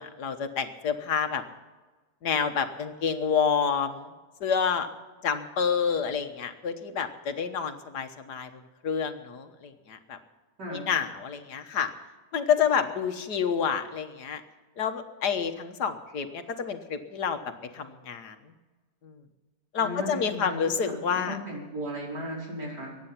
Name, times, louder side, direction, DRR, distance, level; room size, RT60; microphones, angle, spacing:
voice 1, 0.0-1.4 2.2-4.1 4.4-4.9 5.2-10.2 10.7-11.9 12.3-14.4 14.8-17.4 17.7-18.4 19.0-19.2 19.7-21.4, left 7 dB, 75° left, 7 dB, 1.8 m, -28 dB
voice 2, 19.8-23.1, equal, 85° right, -4 dB, 5.8 m, -36 dB
23.5 x 9.8 x 5.9 m, 1.2 s
omnidirectional pair, 1.8 m